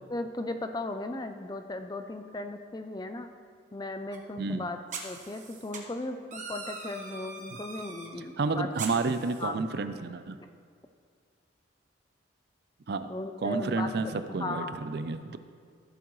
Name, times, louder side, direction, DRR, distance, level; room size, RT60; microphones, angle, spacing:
voice 1, 0.1-3.3 3.7-4.8 5.0-8.7 9.4-9.6 13.1-13.9 14.4-14.8, left 2 dB, 20° left, 7 dB, 0.4 m, -36 dB
sound 1, 4.1-4.2 4.9-5.8 6.3-8.1 8.8-9.5, right 4 dB, 40° right, 1.1 m, -41 dB
voice 2, 8.1-10.4 12.9-13.1 13.4-15.4, right 3 dB, 55° right, 10 dB, 0.4 m, -31 dB
14.5 x 8.1 x 3.1 m, 2.1 s
head